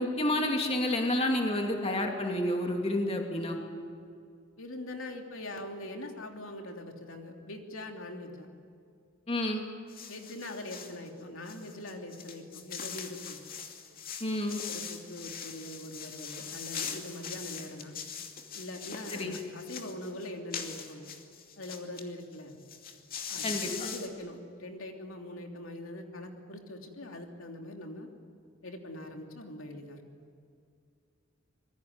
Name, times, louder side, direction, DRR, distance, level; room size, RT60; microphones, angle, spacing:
voice 1, 0.0-3.6 9.3-9.6 14.2-14.6 19.1-19.4 23.4-23.7, left 1 dB, 30° left, 2 dB, 2.6 m, -29 dB
voice 2, 4.6-8.5 10.1-13.4 14.7-17.9 18.5-21.1 21.6-22.6 23.3-28.1 28.6-30.0, left 1 dB, 75° left, 3 dB, 3.2 m, -42 dB
sound 1, 9.9-11.0 11.4-22.0 22.3-22.4 22.6-24.1, left 7 dB, 45° left, 2.6 m, -41 dB
26.0 x 22.0 x 9.6 m, 2.4 s
head